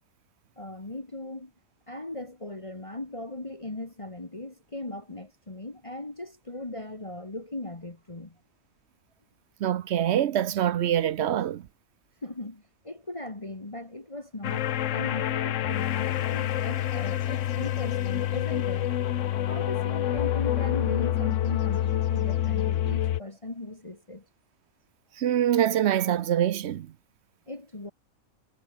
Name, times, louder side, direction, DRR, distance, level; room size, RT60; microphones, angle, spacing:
voice 1, 0.6-1.5 1.9-8.4 12.2-18.9 19.5-24.2 27.5-27.9, left 2 dB, 20° left, 1.9 m, -38 dB
voice 2, 9.6-11.6 25.2-26.9, right 10 dB, 60° right, 0.8 m, -24 dB
sound 1, 14.4-23.2, left 11 dB, 65° left, 1.0 m, -27 dB
omnidirectional pair, 1.5 m